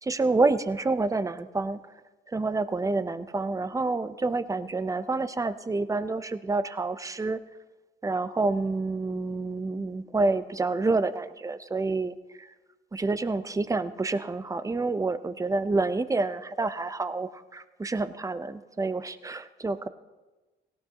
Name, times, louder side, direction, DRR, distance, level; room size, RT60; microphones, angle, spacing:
voice 1, 0.0-1.8 2.3-7.4 8.0-12.5 12.9-19.9, right 3 dB, 15° right, 12 dB, 0.7 m, -28 dB
18.0 x 17.0 x 2.9 m, 1.2 s
cardioid pair, 90°, 20 cm